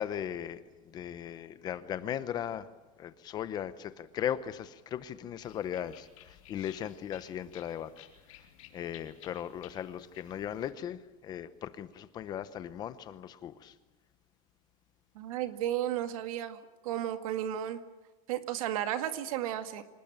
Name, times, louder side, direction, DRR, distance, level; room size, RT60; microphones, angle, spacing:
voice 1, 0.0-2.7 3.0-8.1 8.7-13.7, left 10 dB, 25° left, 14 dB, 0.8 m, -38 dB
sound 1, 5.4-10.7, left 11 dB, 65° left, 4.4 m, -56 dB
voice 2, 15.2-17.8 18.3-19.8, right 11 dB, 75° right, 8 dB, 2.1 m, -33 dB
26.0 x 19.0 x 9.0 m, 1.1 s
supercardioid pair, 180°, 18 cm